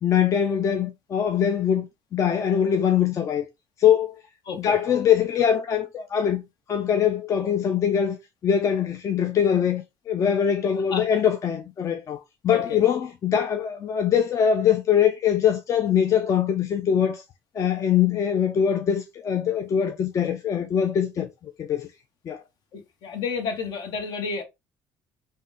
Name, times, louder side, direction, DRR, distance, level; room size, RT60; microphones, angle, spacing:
voice 1, 0.0-1.9 2.1-3.5 3.8-4.2 4.6-6.4 6.7-8.2 8.4-17.2 17.5-21.3 21.6-21.9 22.3-22.4, left 8 dB, 45° left, 0.4 m, -22 dB
voice 2, 22.7-24.4, left 5 dB, 65° left, 0.9 m, -31 dB
3.4 x 2.1 x 2.6 m
supercardioid pair, 80°, 8 cm